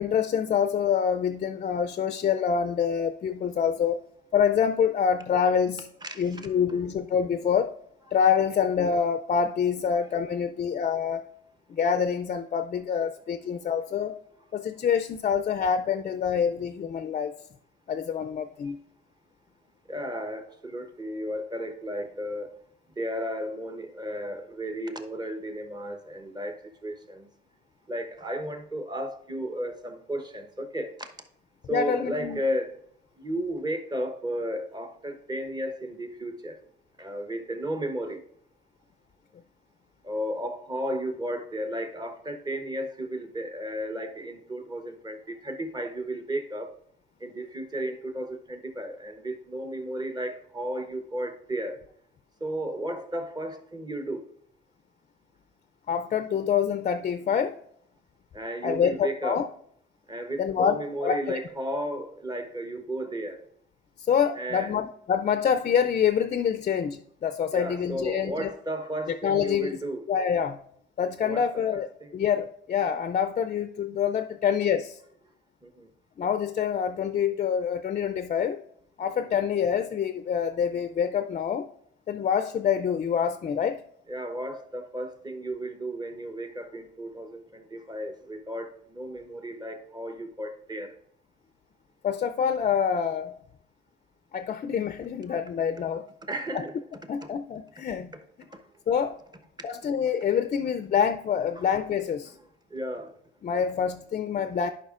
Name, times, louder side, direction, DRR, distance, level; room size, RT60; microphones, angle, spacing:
voice 1, 0.0-4.0 4.3-5.8 6.2-7.7 8.1-11.2 11.8-14.2 14.5-17.3 17.9-18.8 31.7-32.4 55.9-57.6 58.6-59.5 60.4-61.2 64.1-68.5 69.1-69.8 70.1-70.6 71.0-71.9 72.1-75.0 76.2-78.6 79.0-81.7 82.1-83.8 92.0-93.3 94.3-96.0 97.1-98.1 98.9-99.2 99.6-102.3 103.4-104.7, left 7 dB, 40° left, 0.4 m, -26 dB
voice 2, 6.0-6.8 19.9-22.5 23.0-26.6 26.8-27.3 27.9-30.9 31.7-32.7 33.2-36.6 37.0-38.2 40.0-46.7 47.2-51.8 52.4-54.3 58.3-59.4 60.1-63.4 64.3-64.7 67.5-70.1 71.2-71.5 71.7-72.2 75.6-75.9 79.0-79.3 84.1-90.9 95.3-95.4 96.3-96.7 97.2-97.3 101.6-101.7 102.3-102.4 102.7-103.1, right 1 dB, 20° right, 1.0 m, -34 dB
11.0 x 5.1 x 2.4 m
cardioid pair, 90°, 20 cm